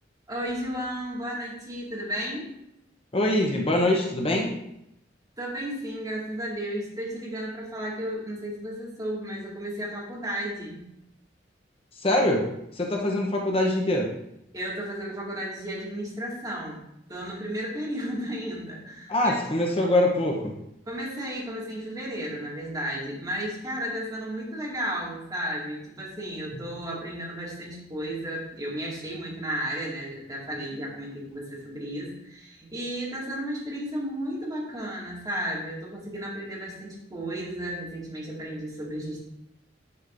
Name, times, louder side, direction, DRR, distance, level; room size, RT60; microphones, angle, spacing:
voice 1, 0.3-2.5 5.4-10.9 14.5-16.8 17.1-19.4 20.9-39.2, equal, 20° right, -5 dB, 2.0 m, -33 dB
voice 2, 3.1-4.5 12.0-12.4 12.7-14.1 19.1-20.5, left 1 dB, 30° left, 0 dB, 0.8 m, -23 dB
9.6 x 5.2 x 2.6 m, 0.81 s
head